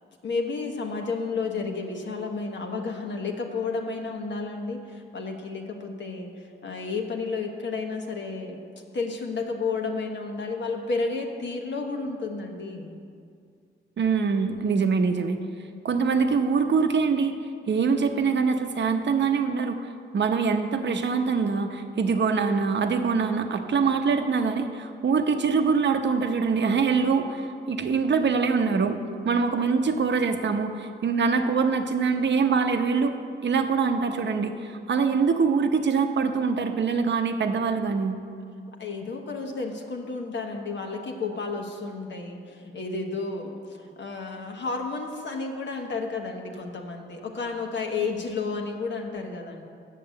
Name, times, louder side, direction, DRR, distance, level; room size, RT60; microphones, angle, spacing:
voice 1, 0.2-8.7 8.9-13.0 14.4-14.7 38.8-49.6, left 4 dB, 65° left, 2 dB, 1.2 m, -32 dB
voice 2, 14.0-15.4 15.8-17.4 17.7-19.9 20.1-29.0 29.2-33.2 33.4-38.2, right 5 dB, 60° right, 6 dB, 0.8 m, -24 dB
7.7 x 6.7 x 7.9 m, 2.3 s
cardioid pair, 75°, 20 cm